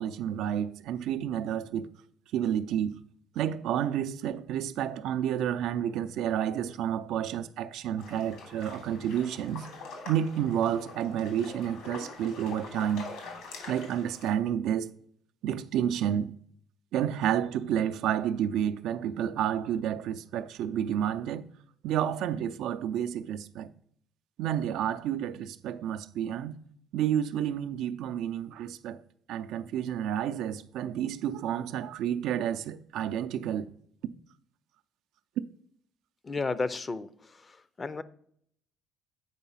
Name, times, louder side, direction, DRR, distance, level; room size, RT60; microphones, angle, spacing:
voice 1, 0.0-1.9 2.3-3.0 3.3-9.7 10.0-13.1 13.7-14.9 15.4-16.3 16.9-21.5 21.8-23.7 24.4-26.6 26.9-29.0 29.3-33.7, right 10 dB, 75° right, 0.4 m, -30 dB
sound 1, 8.0-14.3, left 3 dB, 80° left, 3.1 m, -44 dB
voice 2, 36.2-37.1 37.8-38.0, left 3 dB, 25° left, 0.5 m, -31 dB
8.1 x 4.6 x 5.6 m
cardioid pair, 105°, 0 cm